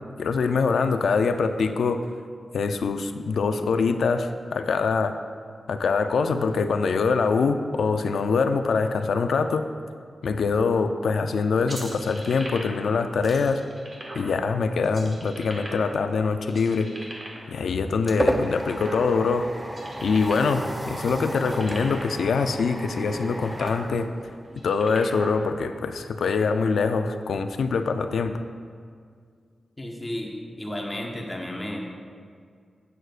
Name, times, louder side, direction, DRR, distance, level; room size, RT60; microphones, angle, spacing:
voice 1, 0.2-2.0 2.5-5.2 5.7-9.6 10.2-13.6 14.1-16.9 17.5-19.5 20.0-24.1 24.6-28.3, left 4 dB, 85° left, 8 dB, 0.4 m, -24 dB
sound 1, 11.7-12.9 13.2-14.3 14.8-16.1 16.5-17.5 18.0-19.3 19.6-20.6 20.9-21.0 21.3-22.2 22.8-22.9 23.3-23.8 24.4-25.3, right 1 dB, 35° right, 1.4 m, -39 dB
sound 2, 17.3-24.8, right 1 dB, 10° right, 0.4 m, -32 dB
voice 2, 29.8-31.8, left 1 dB, 15° left, 0 dB, 0.8 m, -33 dB
11.0 x 7.9 x 2.5 m, 2.1 s
wide cardioid pair, 160°, 0 cm